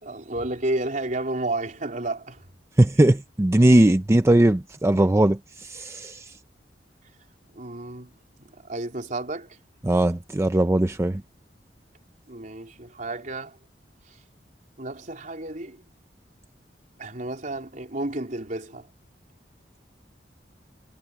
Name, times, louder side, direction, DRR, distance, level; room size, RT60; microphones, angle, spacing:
voice 1, 0.0-2.4 7.5-8.1 8.7-9.5 12.3-13.6 14.8-15.8 17.0-18.9, right 2 dB, 50° right, 4.0 m, -31 dB
voice 2, 2.8-6.3 9.8-11.2, right 1 dB, 15° right, 0.5 m, -19 dB
head